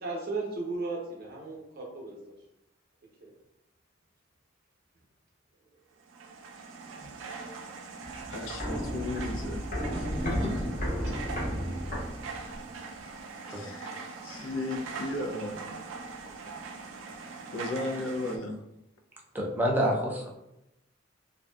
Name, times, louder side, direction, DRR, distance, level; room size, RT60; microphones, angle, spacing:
voice 1, 0.0-2.2 3.2-3.3, right 3 dB, 50° right, -2 dB, 0.7 m, -35 dB
sound 1, 6.0-18.4, right 4 dB, 80° right, 0.3 m, -42 dB
Walk footsteps, 8.0-12.7 13.0-13.1, equal, 45° left, 0.8 m, -33 dB
voice 2, 8.3-9.7 9.9-10.7 13.5-14.0 14.2-15.8 16.5-16.6 17.5-18.6, left 2 dB, 80° left, 2 dB, 0.4 m, -35 dB
voice 3, 19.3-20.3, equal, 10° right, -2 dB, 0.4 m, -27 dB
2.5 x 2.2 x 2.2 m, 0.86 s
head